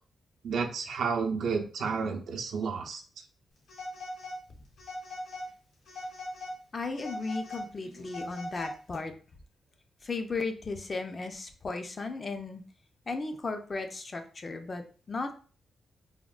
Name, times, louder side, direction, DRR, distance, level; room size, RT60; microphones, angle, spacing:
voice 1, 0.4-3.0, right 5 dB, 80° right, 3 dB, 0.5 m, -31 dB
Telephone, 3.7-4.4 4.8-5.5 5.9-6.6 6.9-9.0, left 1 dB, 85° left, 1.1 m, -40 dB
voice 2, 6.7-9.1 10.0-12.6 13.1-15.3, left 3 dB, 35° left, 6 dB, 0.4 m, -35 dB
3.5 x 2.1 x 2.3 m, 0.39 s
cardioid pair, 110°, 0 cm